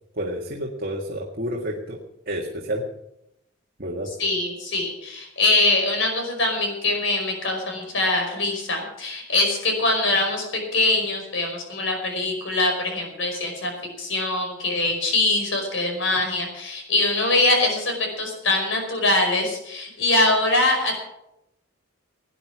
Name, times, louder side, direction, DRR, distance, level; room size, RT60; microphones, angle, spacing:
voice 1, 0.2-2.0 2.2-2.8 3.8-4.1, equal, 45° right, -1 dB, 1.8 m, -29 dB
voice 2, 4.2-13.7 14.0-21.0, left 2 dB, 65° left, 3 dB, 5.2 m, -23 dB
18.0 x 9.9 x 6.2 m, 0.85 s
head